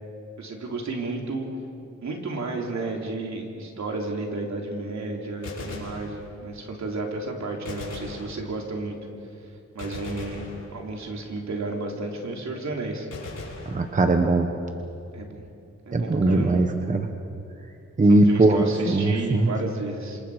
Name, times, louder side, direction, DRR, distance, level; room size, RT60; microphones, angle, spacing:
voice 1, 0.4-1.5 2.0-9.0 9.7-10.4 10.7-13.1 15.1-15.4 15.8-16.6 18.1-20.2, right 3 dB, 70° right, 1 dB, 3.3 m, -32 dB
Gunshot gunfire, 5.4-6.7 7.6-8.9 9.8-11.2 13.1-14.4, left 3 dB, 60° left, 6.9 m, -40 dB
voice 2, 13.7-14.5 15.9-17.1 18.0-19.5, right 2 dB, 25° right, 5 dB, 1.1 m, -20 dB
27.0 x 27.0 x 5.0 m, 2.6 s
wide cardioid pair, 165°, 29 cm